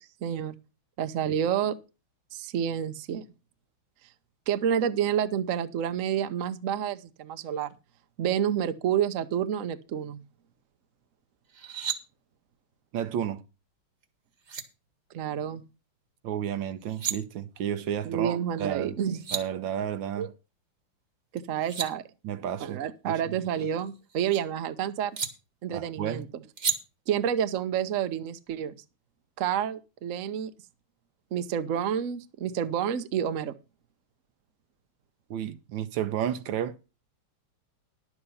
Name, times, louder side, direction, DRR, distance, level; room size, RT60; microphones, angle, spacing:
voice 1, 0.2-0.6 1.0-1.8 2.3-3.2 4.5-7.7 8.2-10.2 15.1-15.6 18.0-19.2 20.2-20.3 21.3-22.0 22.6-25.2 25.6-26.3 27.1-28.7 29.4-30.5 31.3-33.5, right 9 dB, 55° right, 0.9 m, -29 dB
sound 1, 11.5-12.0 14.0-14.1 14.4-14.6 16.7-17.2 18.8-18.9 19.1-19.4 21.4-21.9 23.4-24.4 25.2-25.3 26.6-26.8, right 7 dB, 40° right, 1.3 m, -32 dB
voice 2, 12.9-13.4 16.2-19.0 19.3-20.3 22.2-23.2 25.7-26.3 35.3-36.8, right 10 dB, 70° right, 1.4 m, -32 dB
11.0 x 7.8 x 5.4 m
omnidirectional pair, 2.3 m